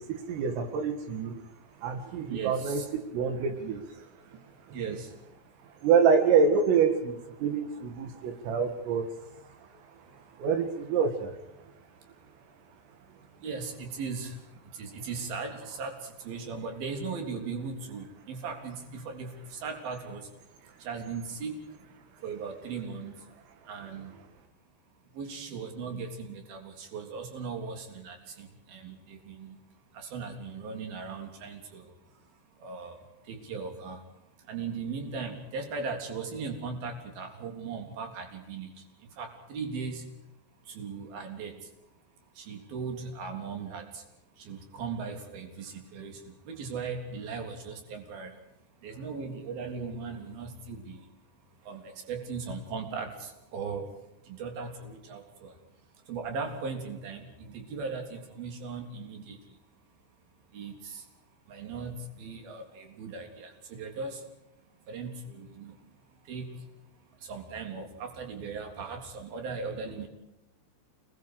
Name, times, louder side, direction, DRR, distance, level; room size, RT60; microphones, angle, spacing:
voice 1, 0.0-1.4 1.8-2.8 3.1-4.1 5.8-9.1 10.4-11.4, right 6 dB, 85° right, 7 dB, 4.6 m, -26 dB
voice 2, 2.3-2.8 4.7-5.1 13.4-14.4 14.8-16.0 16.2-20.3 20.8-21.6 22.2-23.2 23.7-24.1 25.2-29.6 29.9-31.8 32.6-33.0 33.3-34.0 34.5-38.7 39.2-40.1 40.7-41.6 42.4-43.8 44.5-46.2 46.5-48.3 48.8-51.0 51.7-53.9 54.3-55.5 56.1-59.4 60.5-61.0 61.5-64.2 64.9-65.7 66.3-66.6 67.3-70.1, right 5 dB, 50° right, 4 dB, 5.0 m, -38 dB
28.5 x 22.0 x 4.9 m, 0.90 s
omnidirectional pair, 5.8 m